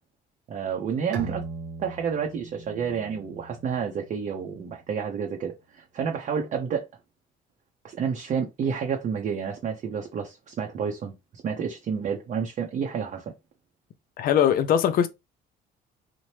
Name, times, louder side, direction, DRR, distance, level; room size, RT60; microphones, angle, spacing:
voice 1, 0.5-1.5 1.8-6.9 7.8-11.1 11.4-13.3, right 6 dB, 45° right, 0.6 m, -30 dB
Bowed string instrument, 1.1-4.6, right 4 dB, 85° right, 0.8 m, -39 dB
voice 2, 14.2-15.1, left 9 dB, 60° left, 0.5 m, -21 dB
2.9 x 2.1 x 3.1 m
cardioid pair, 110°, 17 cm